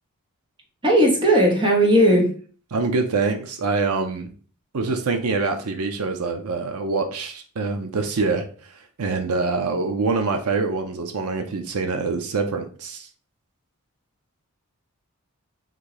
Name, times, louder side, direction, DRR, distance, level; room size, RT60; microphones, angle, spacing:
voice 1, 0.8-2.3, right 1 dB, 20° right, 0 dB, 1.0 m, -17 dB
voice 2, 2.7-4.3 4.7-13.1, right 4 dB, 80° right, 6 dB, 0.6 m, -25 dB
3.8 x 2.7 x 4.7 m, 0.42 s
head